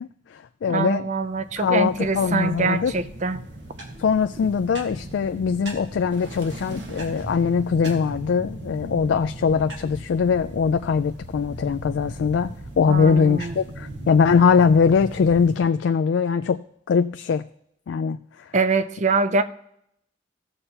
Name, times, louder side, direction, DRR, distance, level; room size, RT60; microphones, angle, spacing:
voice 1, 0.0-1.1 1.6-2.9 4.0-16.6 16.9-17.4 17.9-18.2, left 6 dB, 70° left, 9 dB, 0.3 m, -21 dB
voice 2, 0.7-3.4 12.9-13.6 18.5-19.4, right 3 dB, 40° right, 12 dB, 0.5 m, -24 dB
sound 1, 1.1-15.6, right 1 dB, 65° right, 1.5 m, -38 dB
16.0 x 6.7 x 2.9 m, 0.74 s
head